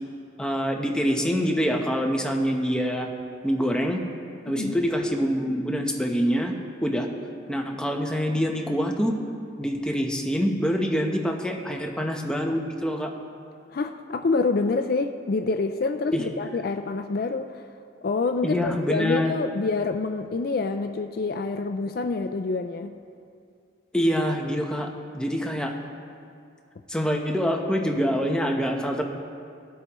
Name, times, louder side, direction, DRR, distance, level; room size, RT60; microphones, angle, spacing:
voice 1, 0.4-3.1 3.4-4.0 4.4-6.5 6.8-7.1 7.5-9.2 9.6-13.1 16.1-16.2 18.4-19.3 23.9-25.7 26.9-29.0, equal, 5° left, 2 dB, 0.9 m, -25 dB
voice 2, 13.7-17.6 18.0-22.9, left 3 dB, 50° left, 7 dB, 0.4 m, -27 dB
18.5 x 8.1 x 3.0 m, 2.4 s
head